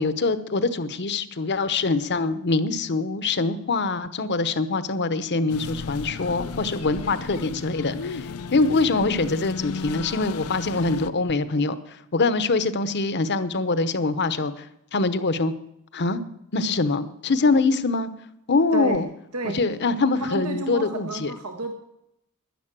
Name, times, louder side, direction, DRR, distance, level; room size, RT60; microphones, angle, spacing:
voice 1, 0.0-14.7 14.9-15.5 15.9-16.2 16.5-18.1 18.5-19.0 19.4-21.3, left 3 dB, 50° left, 13 dB, 0.9 m, -24 dB
sound 1, 5.5-11.1, left 4 dB, 70° left, 0.6 m, -34 dB
voice 2, 20.2-21.7, right 3 dB, 85° right, 5 dB, 1.4 m, -30 dB
11.5 x 10.5 x 7.5 m, 0.81 s
head